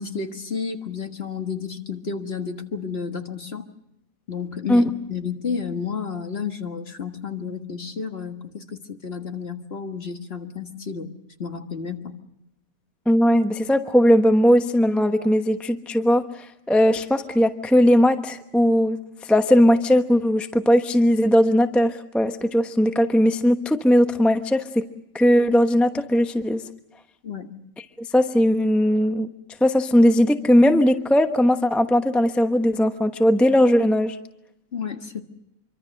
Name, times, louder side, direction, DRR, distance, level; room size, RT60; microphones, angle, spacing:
voice 1, 0.0-3.6 4.3-11.1 11.4-12.1 27.2-27.5 34.7-35.2, left 6 dB, 35° left, 6 dB, 1.7 m, -31 dB
voice 2, 13.1-24.8 25.1-26.6 28.0-29.3 29.6-34.2, equal, ahead, 7 dB, 0.7 m, -19 dB
26.0 x 24.5 x 6.6 m, 0.84 s
omnidirectional pair, 1.9 m